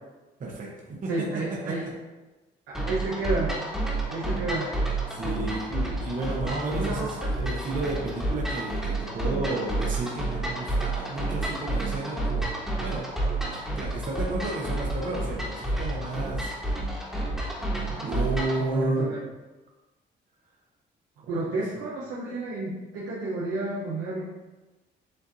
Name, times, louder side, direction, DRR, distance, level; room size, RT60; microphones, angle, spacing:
voice 1, 0.4-1.7 5.1-12.5 12.8-13.1 13.5-16.5 17.0-17.1 17.6-19.2 21.2-21.4, right 2 dB, 40° right, -2 dB, 0.9 m, -32 dB
voice 2, 1.1-1.8 2.7-3.6 4.1-4.7 5.5-5.6 6.7-7.1 17.9-18.2 18.6-19.2 21.3-24.2, right 2 dB, 80° right, -6 dB, 0.9 m, -31 dB
sound 1, 2.7-18.6, right 2 dB, ahead, 1.3 m, -30 dB
7.6 x 2.6 x 2.7 m, 1.1 s
cardioid pair, 90°, 20 cm